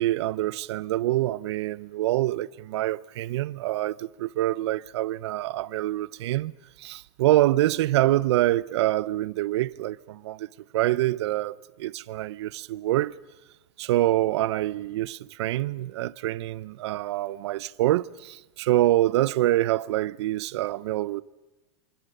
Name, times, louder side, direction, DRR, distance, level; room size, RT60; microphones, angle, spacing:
voice 1, 0.0-6.5 6.8-10.5 10.7-13.2 13.8-21.2, right 15 dB, 65° right, 0.8 m, -25 dB
26.5 x 26.0 x 6.7 m
supercardioid pair, 155°, 15 cm